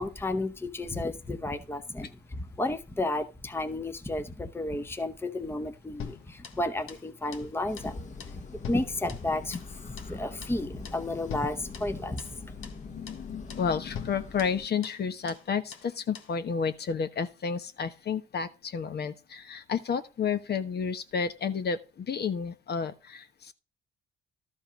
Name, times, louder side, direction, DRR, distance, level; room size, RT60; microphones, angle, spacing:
voice 1, 0.0-8.0 8.2-12.2, left 2 dB, 10° left, 0.9 m, -32 dB
sound 1, 6.0-7.1 7.3-7.5 7.8-7.9 8.2-9.7 10.0-10.2 10.4-10.6 10.8-11.0 11.3-12.4 12.6-12.8 13.1-13.2 13.5-13.7 13.9-15.0 15.3-15.4 15.7-16.3, left 7 dB, 80° left, 1.5 m, -43 dB
sound 2, 7.7-14.7, left 4 dB, 35° left, 1.4 m, -44 dB
voice 2, 12.8-23.5, left 6 dB, 50° left, 1.1 m, -31 dB
12.5 x 5.3 x 5.2 m
cardioid pair, 100°, 21 cm